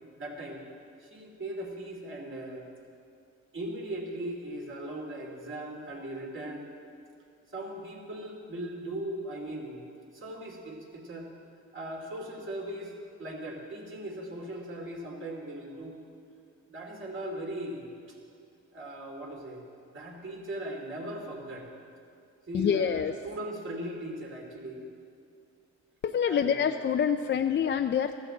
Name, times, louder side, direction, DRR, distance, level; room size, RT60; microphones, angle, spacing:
voice 1, 0.2-0.6 1.0-2.7 3.5-6.7 7.5-9.8 10.1-11.3 11.7-12.9 13.2-16.0 16.7-18.2 18.7-19.7 19.9-21.7 22.5-24.8 26.2-26.6, right 1 dB, 40° right, 0 dB, 2.8 m, -39 dB
voice 2, 22.5-23.1 26.0-28.2, left 7 dB, 40° left, 6 dB, 0.5 m, -26 dB
15.5 x 13.5 x 3.9 m, 2.3 s
cardioid pair, 90°, 30 cm